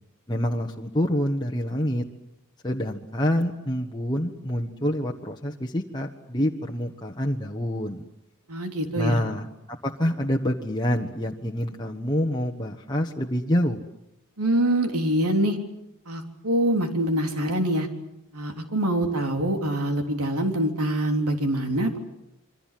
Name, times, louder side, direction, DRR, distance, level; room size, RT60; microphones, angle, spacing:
voice 1, 0.3-2.0 2.6-8.1 8.9-13.8, equal, 20° left, 0 dB, 1.3 m, -27 dB
voice 2, 8.5-9.2 14.4-15.6 16.1-17.9 18.3-22.0, right 1 dB, 80° right, 4 dB, 3.6 m, -24 dB
27.0 x 24.5 x 7.6 m, 0.83 s
head